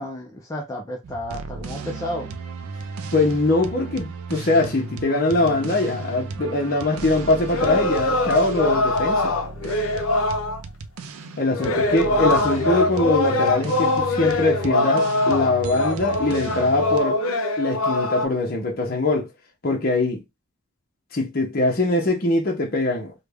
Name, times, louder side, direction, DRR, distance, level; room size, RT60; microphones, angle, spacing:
voice 1, 0.0-2.3 11.9-12.8, left 1 dB, 15° left, 0.4 m, -33 dB
sound 1, 1.0-17.0, right 3 dB, 80° right, 0.4 m, -34 dB
voice 2, 3.1-9.4 11.4-17.2 17.6-19.3 19.6-20.2 21.1-23.1, left 2 dB, 40° left, 0.8 m, -22 dB
sound 2, 7.5-10.6 11.5-18.2, left 2 dB, 75° left, 0.6 m, -23 dB
3.2 x 2.2 x 3.4 m
head